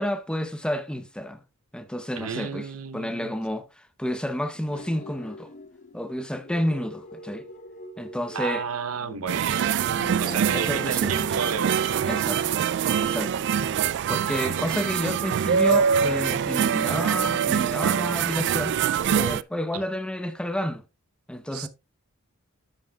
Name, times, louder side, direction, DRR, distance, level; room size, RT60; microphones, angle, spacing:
voice 1, 0.0-1.4 1.7-2.7 2.9-5.5 5.9-7.5 8.0-8.6 10.1-10.2 10.5-11.3 12.0-12.6 13.0-13.5 14.1-18.8 19.2-20.8 21.3-21.7, equal, 5° left, 0.7 m, -30 dB
voice 2, 2.2-3.3 8.3-9.8 10.2-12.0 21.5-21.7, right 6 dB, 75° right, 0.8 m, -32 dB
sound 1, 4.5-11.1, left 1 dB, 35° left, 0.8 m, -43 dB
sound 2, 9.3-19.4, right 7 dB, 55° right, 0.3 m, -24 dB
10.5 x 7.7 x 2.3 m
head